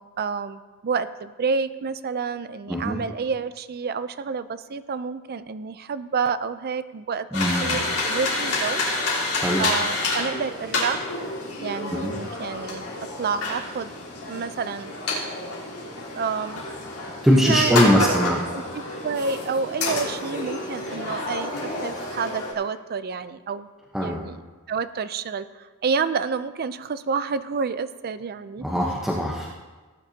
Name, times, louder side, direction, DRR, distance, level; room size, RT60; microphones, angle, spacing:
voice 1, 0.0-7.3 7.6-8.8 9.6-11.0 11.6-12.9 13.2-13.9 14.3-14.9 16.1-16.6 17.5-23.7 24.0-24.4 24.7-28.6, right 5 dB, 45° right, 13 dB, 0.5 m, -29 dB
sound 1, 7.3-22.5, left 2 dB, 75° left, 3.7 m, -29 dB
voice 2, 7.3-7.8 9.4-9.7 11.9-12.2 17.2-18.5 23.9-24.2 28.6-29.5, equal, ahead, -4 dB, 0.9 m, -21 dB
18.0 x 10.0 x 2.8 m, 1.3 s
head